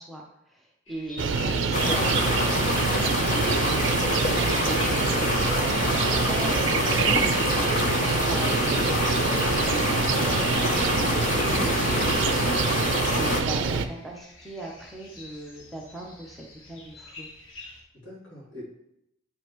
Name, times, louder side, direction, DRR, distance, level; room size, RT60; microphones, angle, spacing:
voice 1, 0.0-6.8 7.2-9.5 9.9-12.2 13.1-17.3, right 1 dB, ahead, -2 dB, 0.7 m, -40 dB
sound 1, 0.9-17.8, left 2 dB, 85° left, 1.2 m, -45 dB
sound 2, 1.2-13.9, right 5 dB, 65° right, 0.4 m, -25 dB
sound 3, 1.7-13.4, left 2 dB, 40° left, 0.6 m, -27 dB
voice 2, 17.9-18.6, left 1 dB, 70° left, -6 dB, 2.9 m, -45 dB
8.6 x 5.1 x 3.1 m, 0.81 s
head